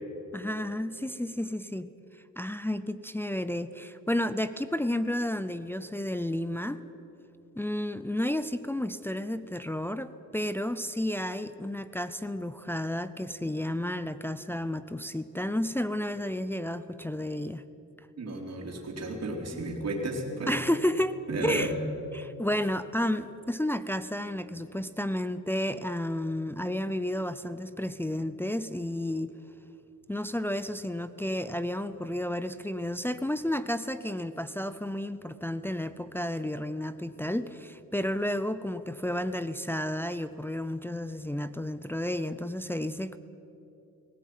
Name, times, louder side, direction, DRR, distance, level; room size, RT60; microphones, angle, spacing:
voice 1, 0.3-1.9 2.4-6.8 7.6-17.6 19.5-19.7 20.5-21.7 22.1-29.3 30.1-43.2, left 1 dB, 5° left, 11 dB, 0.6 m, -32 dB
voice 2, 18.2-20.6 21.3-21.8, right 2 dB, 50° right, -1 dB, 3.6 m, -33 dB
19.5 x 17.5 x 9.3 m, 2.9 s
wide cardioid pair, 130°, 33 cm